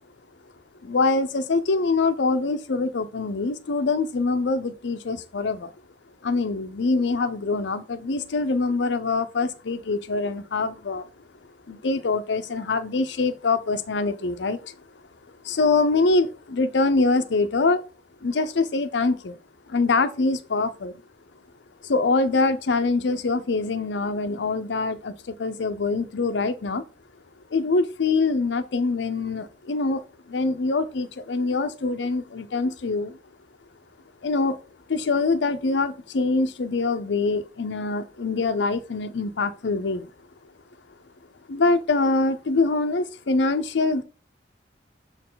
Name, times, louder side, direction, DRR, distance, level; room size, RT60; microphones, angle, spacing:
voice 1, 0.8-5.7 6.2-11.1 11.7-14.7 15.4-17.8 18.2-19.4 19.7-21.0 21.8-26.8 27.5-33.2 34.2-34.6 34.9-40.1 41.5-44.0, left 3 dB, 75° left, 0.6 m, -24 dB
6.6 x 4.5 x 3.8 m
head